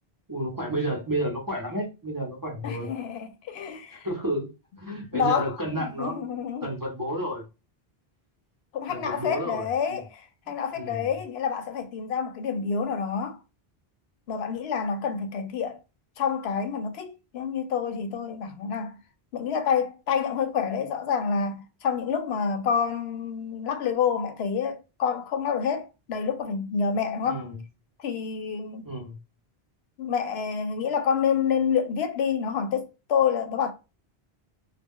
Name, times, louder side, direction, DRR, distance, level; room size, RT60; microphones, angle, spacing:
voice 1, 0.3-2.9 3.9-4.5 4.8-7.4 8.9-10.0 10.8-11.1 27.2-27.6 28.8-29.2, right 1 dB, 25° right, 0.7 m, -31 dB
voice 2, 2.6-4.1 5.1-5.5 5.8-6.7 8.7-13.4 14.3-15.8 16.2-19.0 19.3-27.5 28.0-28.9 30.0-33.7, left 6 dB, 90° left, 0.8 m, -28 dB
2.2 x 2.2 x 3.6 m
omnidirectional pair, 1.0 m